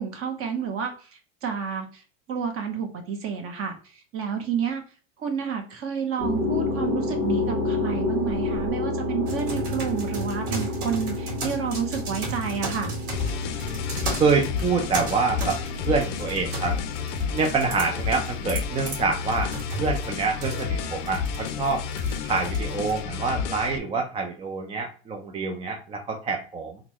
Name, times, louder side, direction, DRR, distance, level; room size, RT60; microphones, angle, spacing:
voice 1, 0.0-2.0 2.3-4.8 5.2-12.9, right 7 dB, 35° right, 5 dB, 0.9 m, -30 dB
sound 1, 6.2-19.7, left 2 dB, 80° right, 1.3 m, -31 dB
sound 2, 9.3-23.0, right 3 dB, 55° right, 1.9 m, -36 dB
sound 3, 13.1-23.8, left 6 dB, 70° left, 0.6 m, -31 dB
voice 2, 14.2-15.6 15.9-16.8 17.3-19.5 19.8-21.8 22.2-26.8, right 4 dB, 15° right, 2 dB, 0.3 m, -26 dB
3.8 x 2.3 x 2.9 m, 0.38 s
supercardioid pair, 120°, 37 cm